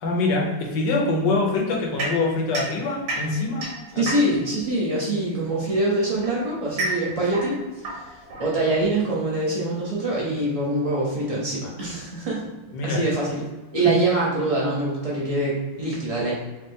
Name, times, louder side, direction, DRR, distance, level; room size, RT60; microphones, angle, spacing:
voice 1, 0.0-3.7 3.9-4.0 12.7-13.0 13.8-13.9, left 3 dB, 65° left, -1 dB, 1.4 m, -24 dB
sound 1, 2.0-4.6 5.6-9.0, right 1 dB, 85° right, 2.1 m, -32 dB
voice 2, 4.0-8.0 8.4-12.5 12.8-13.4 13.7-16.3, right 2 dB, 25° right, -6 dB, 0.8 m, -24 dB
4.9 x 2.4 x 3.5 m, 1.2 s
omnidirectional pair, 2.2 m